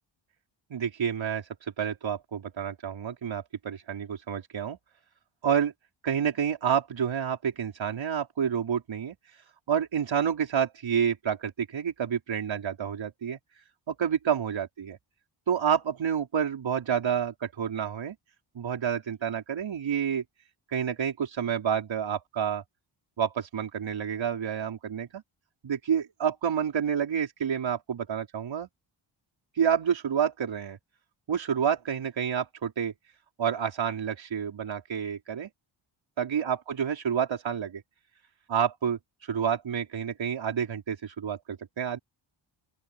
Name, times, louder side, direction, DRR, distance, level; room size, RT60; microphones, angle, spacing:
voice 1, 0.7-4.8 5.4-5.7 6.0-9.2 9.7-13.4 13.9-15.0 15.5-18.2 18.6-20.2 20.7-22.6 23.2-25.2 25.6-28.7 29.6-30.8 31.3-32.9 33.4-35.5 36.2-37.8 38.5-42.0, right 8 dB, 65° right, 5.3 m, -29 dB
open air
wide cardioid pair, 145°, 50 cm